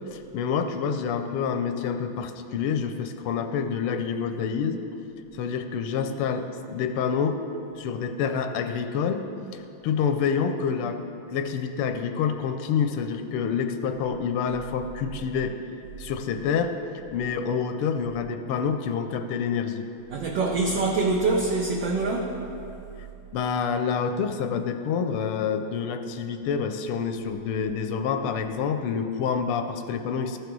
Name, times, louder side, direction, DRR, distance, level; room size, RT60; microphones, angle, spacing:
voice 1, 0.1-4.8 5.3-7.4 7.8-9.2 9.5-11.0 11.3-15.6 16.0-16.7 17.1-19.8 23.3-30.4, left 6 dB, 85° left, 7 dB, 1.5 m, -27 dB
voice 2, 20.1-22.3, right 3 dB, 65° right, 0 dB, 1.2 m, -24 dB
14.0 x 5.0 x 4.6 m, 2.8 s
omnidirectional pair, 2.4 m